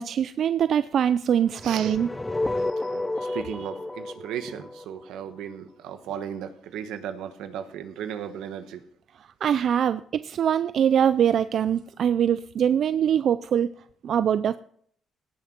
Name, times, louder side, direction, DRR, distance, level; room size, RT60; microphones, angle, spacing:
voice 1, 0.0-2.1 9.4-13.7 14.0-14.6, right 9 dB, 65° right, 13 dB, 0.4 m, -23 dB
sound 1, 1.5-5.6, left 2 dB, 15° left, 0.5 m, -31 dB
voice 2, 1.6-2.0 2.6-8.8, right 9 dB, 90° right, 10 dB, 1.2 m, -36 dB
18.0 x 6.5 x 6.0 m, 0.62 s
cardioid pair, 90°, 0 cm